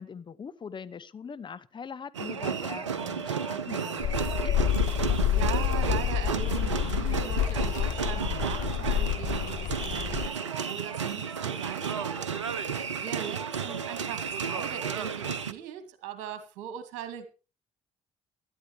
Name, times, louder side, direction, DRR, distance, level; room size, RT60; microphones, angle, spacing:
voice 1, 0.0-4.7 12.8-13.0, left 6 dB, 30° left, 14 dB, 0.9 m, -42 dB
sound 1, 2.1-15.5, right 6 dB, 85° right, 0.6 m, -32 dB
sound 2, 4.0-10.3, left 12 dB, 55° left, 1.0 m, -28 dB
voice 2, 5.3-17.3, right 10 dB, 65° right, 10 dB, 2.2 m, -40 dB
17.0 x 12.0 x 3.1 m, 0.34 s
figure-of-eight pair, 50°, 15 cm